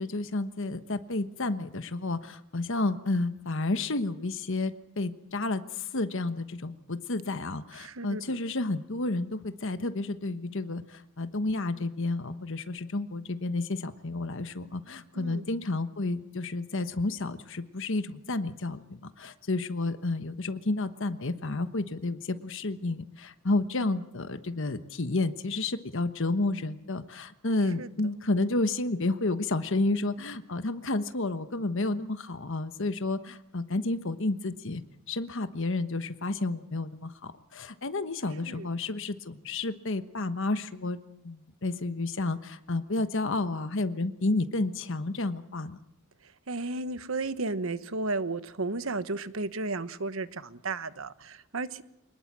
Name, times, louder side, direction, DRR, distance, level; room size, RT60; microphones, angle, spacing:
voice 1, 0.0-34.8 35.1-41.0 41.2-45.8, left 2 dB, 65° left, 10 dB, 1.2 m, -31 dB
voice 2, 7.8-8.4 15.1-15.4 23.8-23.9 27.8-27.9 38.5-38.7 46.5-51.8, right 3 dB, 70° right, 13 dB, 1.2 m, -33 dB
23.5 x 20.0 x 7.5 m, 0.78 s
head